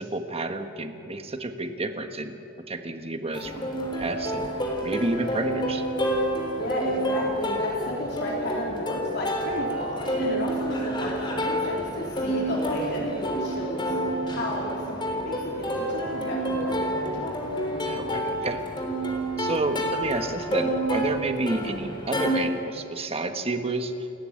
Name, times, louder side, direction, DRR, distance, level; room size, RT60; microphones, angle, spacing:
voice 1, 0.0-2.4 2.7-3.7 4.0-4.4 4.8-5.8 17.8-18.6 19.4-23.9, right 2 dB, 30° right, 6 dB, 1.4 m, -30 dB
Plucked string instrument, 3.3-22.3, right 1 dB, 25° left, 3.7 m, -29 dB
voice 2, 6.6-13.9 14.3-17.4 21.4-21.7, left 1 dB, 55° left, -3 dB, 3.6 m, -32 dB
29.5 x 14.0 x 8.8 m, 2.8 s
head